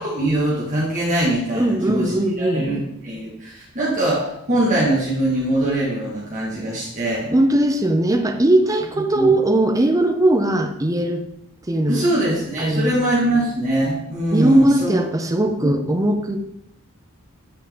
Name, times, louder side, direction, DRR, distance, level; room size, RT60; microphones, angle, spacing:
voice 1, 0.0-7.3 9.1-9.3 11.9-15.0 15.6-15.8, right 1 dB, 35° right, -6 dB, 1.5 m, -22 dB
voice 2, 1.5-2.7 7.3-11.2 11.7-12.1 12.6-13.0 14.3-16.4, right 1 dB, 15° right, 5 dB, 0.5 m, -19 dB
8.6 x 4.2 x 3.6 m, 0.80 s
head